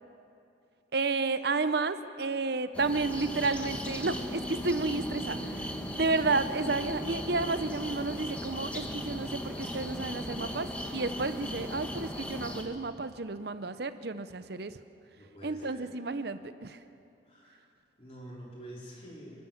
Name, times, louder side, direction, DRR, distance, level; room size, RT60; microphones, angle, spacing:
voice 1, 0.9-5.7 5.9-10.7 10.9-14.7 15.4-16.8, right 3 dB, 55° right, 12 dB, 0.7 m, -31 dB
sound 1, 2.7-12.6, equal, 5° left, 1.5 m, -37 dB
voice 2, 15.2-15.9 17.3-17.6 18.0-19.5, right 1 dB, 30° left, -4 dB, 4.3 m, -47 dB
29.0 x 13.5 x 7.3 m, 2.6 s
head